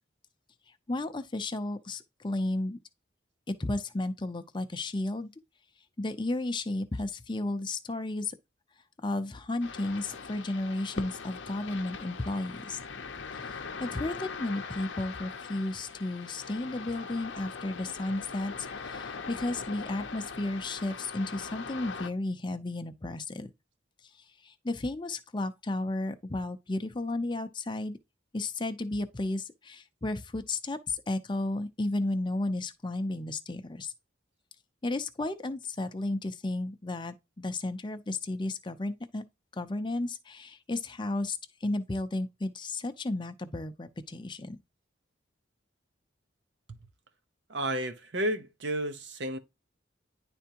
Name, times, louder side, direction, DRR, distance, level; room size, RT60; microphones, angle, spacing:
voice 1, 0.9-2.8 3.5-5.3 6.0-8.3 9.0-12.8 13.4-23.5 24.4-28.0 28.3-33.9 34.8-39.2 39.6-44.6, left 2 dB, 25° left, 0.6 m, -33 dB
sound 1, 9.6-22.1, left 5 dB, 70° left, 0.7 m, -41 dB
voice 2, 47.5-49.4, right 1 dB, 65° right, 0.8 m, -32 dB
10.5 x 3.5 x 2.9 m
head